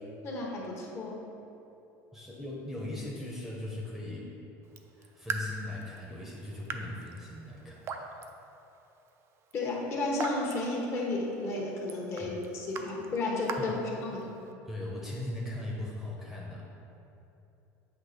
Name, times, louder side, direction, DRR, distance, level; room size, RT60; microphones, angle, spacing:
voice 1, 0.2-1.2 9.5-12.3 12.7-14.2, left 2 dB, 35° left, -2 dB, 1.2 m, -32 dB
voice 2, 2.1-4.3 4.9-7.8 12.2-12.4 13.6-13.8 14.7-16.7, left 1 dB, 5° right, -4 dB, 0.8 m, -39 dB
Raindrop / Drip, 4.6-14.5, right 4 dB, 35° right, 0.5 m, -43 dB
8.1 x 3.0 x 5.9 m, 2.8 s
cardioid pair, 140°, 7 cm